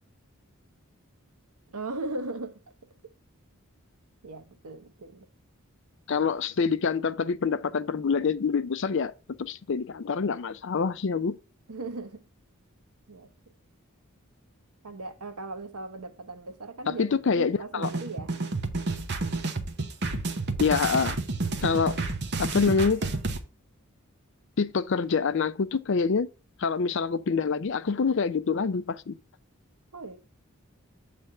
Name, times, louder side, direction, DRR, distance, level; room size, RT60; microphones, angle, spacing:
voice 1, 1.7-2.6 4.2-5.3 11.7-12.2 13.1-13.3 14.8-18.3 29.9-30.2, right 2 dB, 90° right, 0.9 m, -38 dB
voice 2, 6.1-9.1 9.4-11.3 16.9-17.9 20.6-21.2 21.6-22.0 22.4-23.0 24.6-26.3 26.6-29.2, left 5 dB, 55° left, 0.4 m, -26 dB
sound 1, 17.8-23.4, right 3 dB, 50° right, 0.9 m, -30 dB
7.8 x 3.3 x 5.4 m
head